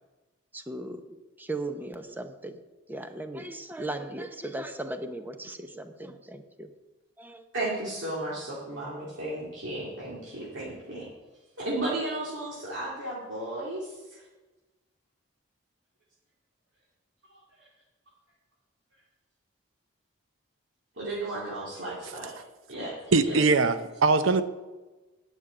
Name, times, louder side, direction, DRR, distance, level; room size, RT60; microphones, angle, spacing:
voice 1, 0.5-1.0 1.4-2.6 2.9-6.7 7.2-7.4, right 2 dB, 10° right, 7 dB, 0.8 m, -37 dB
voice 2, 7.5-11.1 11.6-14.3 17.3-17.7 20.9-22.3 22.7-22.9 23.2-23.4, right 1 dB, 65° right, -7 dB, 2.5 m, -34 dB
voice 3, 23.1-24.4, right 3 dB, 85° right, 11 dB, 0.8 m, -22 dB
9.5 x 6.4 x 8.7 m, 1.2 s
head